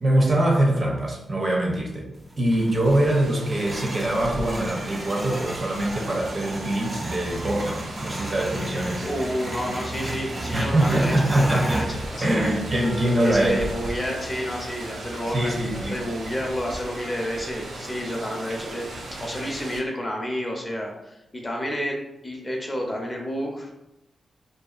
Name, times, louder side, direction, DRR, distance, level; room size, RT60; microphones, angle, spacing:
voice 1, 0.0-2.1 2.4-9.1 10.5-11.8 12.2-13.6 15.3-15.9, right 1 dB, 45° right, 0 dB, 0.7 m, -23 dB
sound 1, 2.2-17.0, right 1 dB, 20° right, 0.3 m, -35 dB
Rain, 2.8-19.8, right 1 dB, 85° right, 0.5 m, -37 dB
voice 2, 9.0-12.6 13.2-18.9 19.2-22.0 22.2-23.7, equal, 30° left, 0 dB, 0.6 m, -30 dB
2.6 x 2.3 x 2.4 m, 0.89 s
cardioid pair, 65°, 0 cm